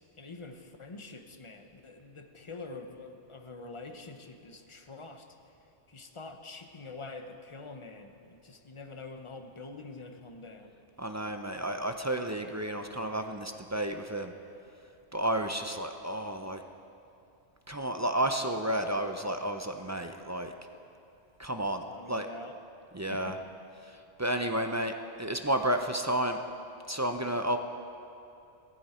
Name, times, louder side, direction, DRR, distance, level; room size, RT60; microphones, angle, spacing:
voice 1, 0.2-5.3 5.9-10.8 21.9-22.6 23.1-23.4, left 3 dB, 30° left, 6 dB, 0.9 m, -45 dB
voice 2, 11.0-14.3 15.1-16.6 17.7-20.5 21.4-21.8 22.1-22.3 22.9-23.4 23.9-26.4 26.9-27.6, right 1 dB, 25° right, 6 dB, 0.4 m, -31 dB
18.0 x 14.0 x 4.3 m, 2.6 s
omnidirectional pair, 1.2 m